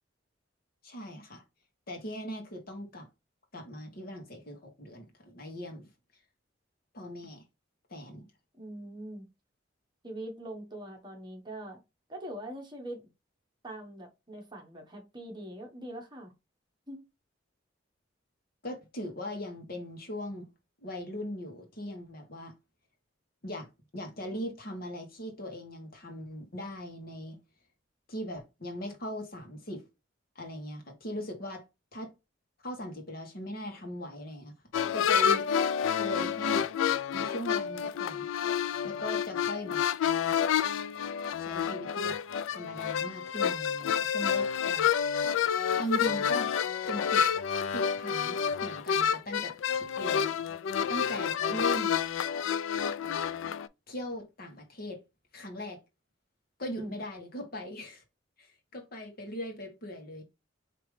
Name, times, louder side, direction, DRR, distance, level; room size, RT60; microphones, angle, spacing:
voice 1, 0.8-1.4 1.9-3.1 3.5-5.9 6.9-7.4 7.9-8.3 18.6-20.5 20.8-22.5 23.4-23.7 23.9-27.4 28.1-29.8 30.3-31.6 31.9-32.1 32.6-34.5 34.9-35.5 36.0-36.7 37.1-38.2 38.8-39.8 41.4-42.1 42.5-44.9 45.7-46.5 46.9-47.2 47.7-50.4 50.9-52.0 53.9-55.0 55.3-55.8 56.6-58.0 58.4-60.2, equal, 50° left, 1.4 m, -39 dB
voice 2, 8.6-9.2 10.0-11.8 12.1-13.1 13.6-16.3 16.9-17.0 56.8-56.9, right 1 dB, 25° right, 1.3 m, -42 dB
sound 1, 34.7-53.7, left 8 dB, 85° left, 0.3 m, -29 dB
4.9 x 3.0 x 3.2 m
head